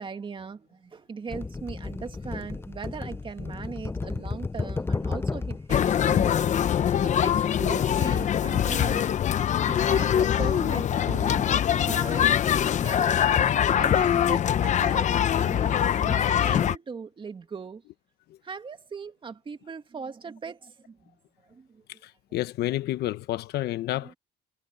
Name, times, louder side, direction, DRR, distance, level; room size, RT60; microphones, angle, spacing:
voice 1, 0.0-6.5 7.0-11.5 11.7-13.3 13.8-17.8 18.4-21.2 21.5-21.8 24.0-24.2, right 5 dB, 30° right, 2.4 m, -39 dB
sound 1, 1.3-5.7 6.8-7.0, left 3 dB, 15° left, 0.5 m, -33 dB
sound 2, 5.7-16.7, left 9 dB, 45° left, 0.9 m, -23 dB
voice 2, 22.0-24.1, left 15 dB, 75° left, 1.1 m, -30 dB
cardioid pair, 110°, 17 cm